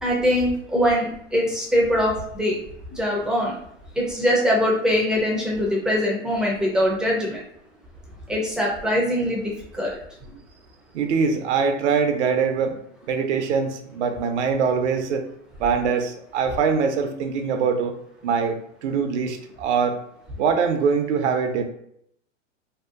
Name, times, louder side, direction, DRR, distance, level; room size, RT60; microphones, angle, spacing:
voice 1, 0.0-2.6 2.9-3.5 4.0-7.4 8.3-10.0, equal, ahead, -3 dB, 0.3 m, -22 dB
voice 2, 10.9-12.8 13.1-15.2 15.6-18.0 18.2-20.0 20.4-21.6, right 6 dB, 65° right, 6 dB, 0.5 m, -23 dB
2.7 x 2.3 x 2.3 m, 0.71 s
hypercardioid pair, 120°, 37 cm